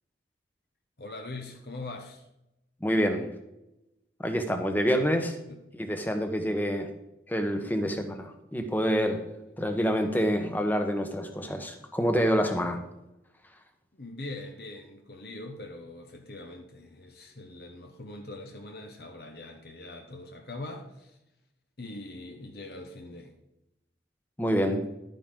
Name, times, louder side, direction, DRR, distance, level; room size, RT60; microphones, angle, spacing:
voice 1, 1.0-2.3 5.5-5.6 9.5-9.7 13.9-21.2 21.8-23.3, left 2 dB, 60° left, 3 dB, 1.0 m, -42 dB
voice 2, 2.8-3.3 4.2-5.4 5.7-6.9 7.3-9.2 9.6-12.8 24.4-24.8, equal, 10° left, 6 dB, 1.1 m, -27 dB
12.0 x 9.2 x 3.8 m, 0.90 s
head